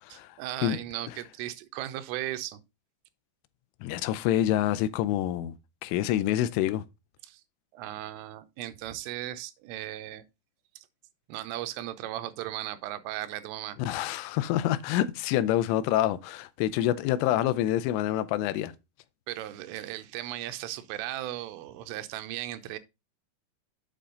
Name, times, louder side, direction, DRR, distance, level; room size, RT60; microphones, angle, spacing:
voice 1, 0.1-2.6 7.2-7.4 7.7-10.2 10.8-10.9 11.3-13.8 19.3-22.8, right 14 dB, 90° right, 3.4 m, -37 dB
voice 2, 3.8-5.5 5.8-6.8 13.8-18.7, left 12 dB, 85° left, 3.1 m, -27 dB
8.4 x 5.4 x 3.8 m
omnidirectional pair, 5.6 m